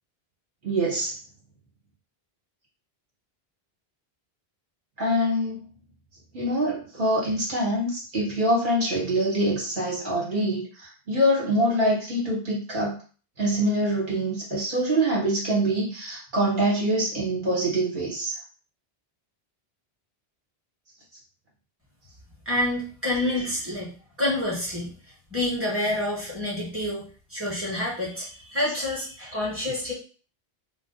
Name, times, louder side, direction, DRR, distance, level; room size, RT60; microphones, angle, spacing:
voice 1, 0.6-1.2 5.0-5.6 6.3-13.0 13.4-18.3, right 1 dB, 55° right, -5 dB, 1.9 m, -25 dB
voice 2, 22.4-23.9 24.2-24.9 25.3-27.0 27.3-29.9, left 1 dB, 15° right, -5 dB, 1.4 m, -28 dB
3.1 x 2.1 x 4.0 m, 0.37 s
omnidirectional pair, 1.0 m